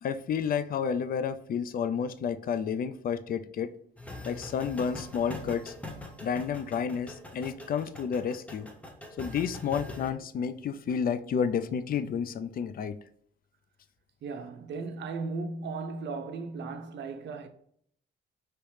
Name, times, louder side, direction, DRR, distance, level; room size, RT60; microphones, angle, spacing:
voice 1, 0.0-3.7 4.2-5.7 6.2-8.7 9.2-12.9, left 7 dB, 50° left, 0.4 m, -31 dB
sound 1, 4.0-10.1, left 1 dB, 5° left, 0.8 m, -43 dB
voice 2, 14.2-17.5, right 4 dB, 65° right, 0.6 m, -36 dB
4.7 x 3.0 x 3.3 m
cardioid pair, 90°, 20 cm